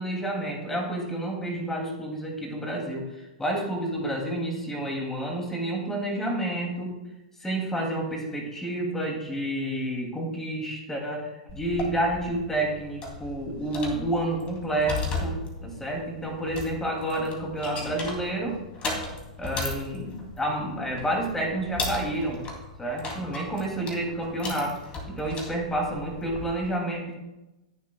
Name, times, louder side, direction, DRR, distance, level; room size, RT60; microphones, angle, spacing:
voice 1, 0.0-6.9 7.4-18.6 19.4-22.4 22.8-24.8 25.1-27.2, right 1 dB, 10° left, 1 dB, 2.7 m, -29 dB
sound 1, 11.5-26.5, left 2 dB, 25° left, 2.8 m, -36 dB
21.0 x 7.5 x 2.3 m, 0.98 s
figure-of-eight pair, 105°, 4 cm